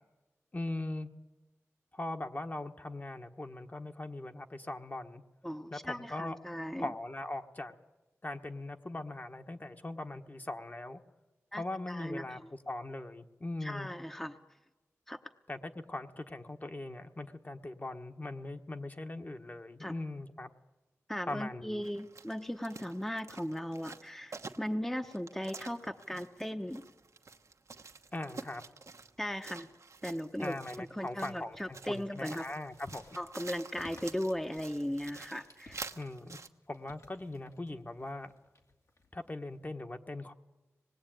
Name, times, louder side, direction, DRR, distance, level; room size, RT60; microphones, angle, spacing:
voice 1, 0.5-1.1 1.9-5.2 5.7-6.4 6.8-7.7 8.2-11.0 11.5-13.9 15.5-20.5 21.3-21.8 28.1-28.6 30.4-33.0 35.9-36.4 36.7-38.3 39.1-40.3, left 2 dB, 35° left, 6 dB, 1.4 m, -40 dB
voice 2, 5.4-6.9 11.5-12.5 13.6-14.4 15.1-15.2 19.8-19.9 21.1-26.8 29.2-29.7 30.0-32.5 33.2-35.8, equal, 5° left, 6 dB, 0.9 m, -37 dB
sound 1, 21.8-36.5, right 4 dB, 70° right, 1.1 m, -49 dB
sound 2, 31.0-39.7, left 2 dB, 70° left, 2.7 m, -59 dB
25.0 x 20.0 x 9.1 m, 1.1 s
cardioid pair, 55°, 5 cm